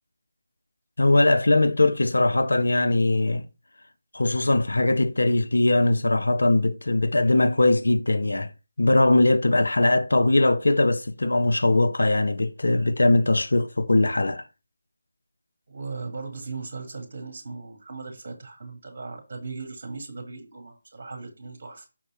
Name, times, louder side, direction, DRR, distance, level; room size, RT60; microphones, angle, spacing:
voice 1, 1.0-3.4 4.1-8.5 8.8-14.4, left 2 dB, 65° left, 0.7 m, -21 dB
voice 2, 15.7-21.9, right 4 dB, 45° right, 1.9 m, -38 dB
6.2 x 4.0 x 4.3 m
figure-of-eight pair, 155°, 0 cm